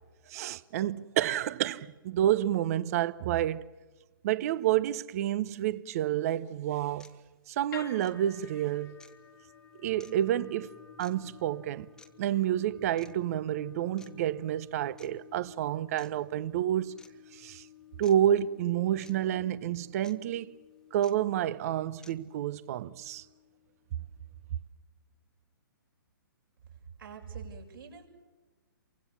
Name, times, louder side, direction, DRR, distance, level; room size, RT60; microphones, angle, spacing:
voice 1, 0.3-3.6 4.2-7.1 7.5-9.0 9.8-10.7 11.0-11.9 12.2-16.9 17.3-17.6 18.0-20.5 20.9-23.2, right 11 dB, 45° right, 0.9 m, -29 dB
sound 1, 6.3-6.4 7.0-7.2 8.0-8.1 9.0-9.2 10.0-10.1 11.0-11.1 12.0-12.1 13.0-13.2 14.0-14.1 15.0-15.1 16.0-16.1 17.0-17.1 18.0-18.2 19.0-19.1 20.0-20.1 21.0-21.1 22.0-22.1, left 3 dB, 5° left, 1.0 m, -54 dB
sound 2, 7.7-23.9, left 9 dB, 70° left, 2.4 m, -53 dB
voice 2, 27.0-28.1, right 6 dB, 75° right, 7.5 m, -44 dB
28.5 x 24.5 x 7.3 m
hypercardioid pair, 145°, 12 cm